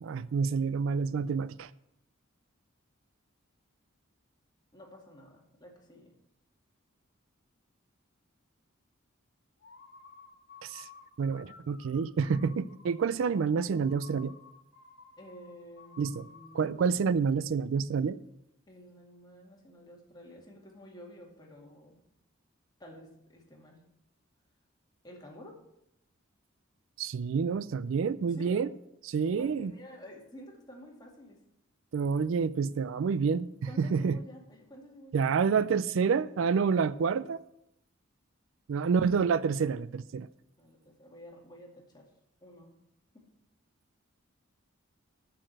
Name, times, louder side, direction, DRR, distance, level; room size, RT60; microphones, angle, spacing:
voice 1, 0.0-1.7 10.6-10.9 11.2-14.3 16.0-16.2 16.5-18.2 27.0-28.7 29.0-29.7 31.9-34.2 35.1-37.4 38.7-40.3, right 5 dB, 70° right, 0.4 m, -28 dB
voice 2, 4.7-6.1 15.2-16.7 18.7-22.0 22.8-23.8 25.0-25.5 28.3-28.6 29.3-31.4 33.7-35.2 38.7-38.9 40.6-42.1 42.4-42.7 43.1-43.2, equal, 20° left, 2.2 m, -50 dB
sound 1, 9.6-16.8, left 5 dB, 60° left, 1.3 m, -54 dB
7.5 x 7.0 x 7.8 m
head